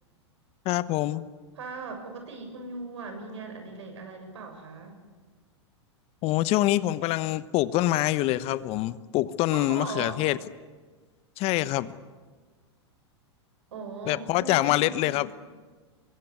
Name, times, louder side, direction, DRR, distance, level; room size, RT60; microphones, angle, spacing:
voice 1, 0.6-1.2 6.2-10.4 11.4-11.9 14.1-15.3, left 16 dB, 45° left, 16 dB, 1.1 m, -25 dB
voice 2, 1.6-5.0 9.5-10.2 13.7-15.2, right 4 dB, 75° right, 4 dB, 7.5 m, -39 dB
24.0 x 22.5 x 9.8 m, 1.4 s
hypercardioid pair, 100°, 15 cm